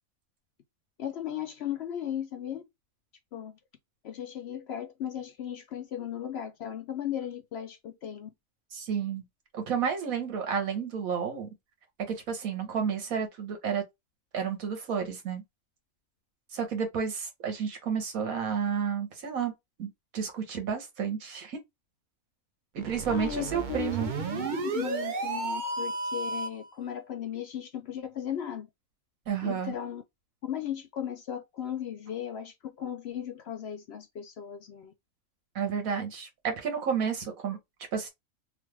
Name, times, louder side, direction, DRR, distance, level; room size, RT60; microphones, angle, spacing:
voice 1, 1.0-2.6 3.3-3.6 4.0-8.3 23.1-28.7 29.4-30.0 30.4-34.9, left 10 dB, 65° left, 0.7 m, -36 dB
voice 2, 8.7-9.2 9.5-11.5 12.1-13.8 14.3-15.4 16.5-19.5 19.8-21.6 22.7-24.1 29.3-29.7 35.5-37.6 37.9-38.1, right 7 dB, 85° right, 1.5 m, -31 dB
sound 1, 22.8-26.7, right 3 dB, 55° right, 0.5 m, -33 dB
3.2 x 2.5 x 3.2 m
omnidirectional pair, 1.4 m